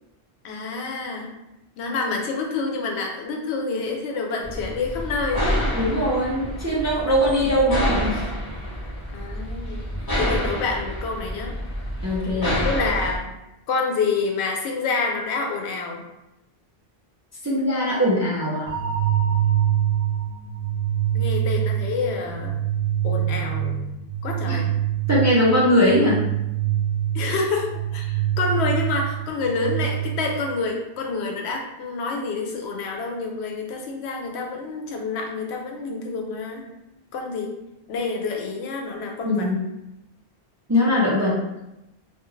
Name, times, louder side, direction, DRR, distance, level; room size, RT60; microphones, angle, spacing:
voice 1, 0.4-1.3 1.8-5.5 9.1-9.9 10.2-11.6 12.6-13.3 13.7-16.0 19.2-19.4 21.1-22.6 23.0-23.9 24.2-24.7 27.1-36.6 37.1-37.6 37.9-39.5, left 4 dB, 85° left, 1 dB, 0.8 m, -28 dB
sound 1, 4.4-13.2, equal, 25° left, 0.7 m, -28 dB
voice 2, 5.7-8.2 12.0-12.6 17.4-18.7 24.5-24.6 25.1-26.2 39.2-39.5 40.7-41.4, equal, 25° right, -6 dB, 0.4 m, -21 dB
sound 2, 18.7-30.6, right 11 dB, 80° right, 0.9 m, -25 dB
2.4 x 2.4 x 3.0 m, 0.91 s
omnidirectional pair, 1.1 m